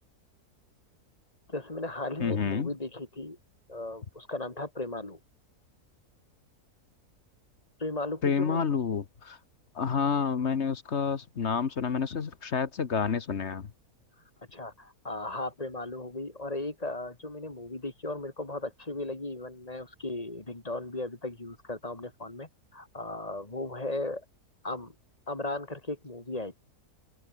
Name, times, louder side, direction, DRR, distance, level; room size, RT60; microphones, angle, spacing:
voice 1, 1.5-3.4 3.7-5.2 7.8-8.6 14.5-24.2 24.6-24.9 25.3-26.5, left 2 dB, 25° left, 3.1 m, -36 dB
voice 2, 2.2-2.7 8.2-9.4 9.7-13.7, left 6 dB, 50° left, 1.4 m, -29 dB
open air
omnidirectional pair, 1.6 m